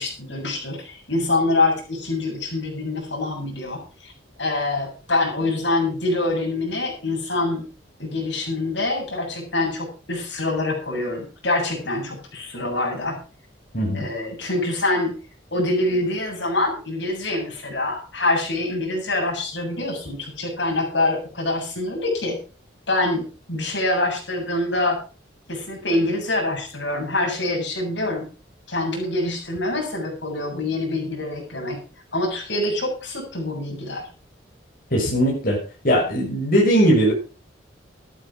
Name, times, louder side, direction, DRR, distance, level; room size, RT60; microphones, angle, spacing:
voice 1, 0.0-4.1 4.4-7.7 8.0-13.2 13.9-15.1 15.5-22.4 22.9-25.0 25.5-28.3 28.7-31.8 32.1-34.1, left 2 dB, 70° left, 0 dB, 7.5 m, -25 dB
voice 2, 13.7-14.1 34.9-35.6 35.8-37.1, equal, 45° left, -4 dB, 5.8 m, -19 dB
13.5 x 11.0 x 4.9 m, 0.36 s
head